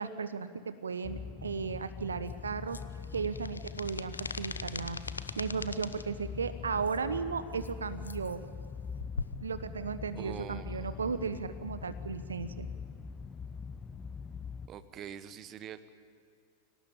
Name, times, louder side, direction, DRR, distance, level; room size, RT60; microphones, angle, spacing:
voice 1, 0.0-2.8 3.1-5.0 5.4-8.4 9.4-12.7, right 5 dB, 70° right, 12 dB, 0.9 m, -35 dB
sound 1, 1.0-14.7, left 6 dB, 20° left, 0.8 m, -43 dB
sound 2, 2.3-6.0 6.9-7.0 7.5-7.7 8.0-8.4 9.0-9.4, left 4 dB, 75° left, 0.8 m, -41 dB
voice 2, 10.1-11.2 14.7-15.9, right 9 dB, 30° right, 13 dB, 1.1 m, -45 dB
23.5 x 18.5 x 8.9 m, 2.3 s
figure-of-eight pair, 90°, 0 cm